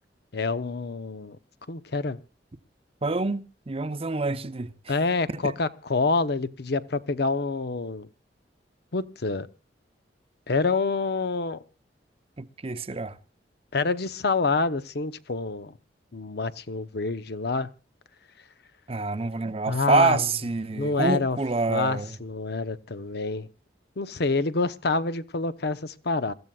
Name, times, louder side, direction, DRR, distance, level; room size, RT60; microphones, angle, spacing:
voice 1, 0.3-1.4 1.7-2.2 4.9-8.1 8.9-9.5 10.5-11.6 13.7-15.8 16.1-17.7 19.7-20.3 20.7-21.4 21.7-23.5 24.0-26.3, left 3 dB, 60° left, 0.8 m, -27 dB
voice 2, 3.0-4.7 5.4-5.5 12.4-13.2 18.9-22.2, right 3 dB, 30° right, 0.8 m, -27 dB
27.5 x 14.0 x 2.4 m
head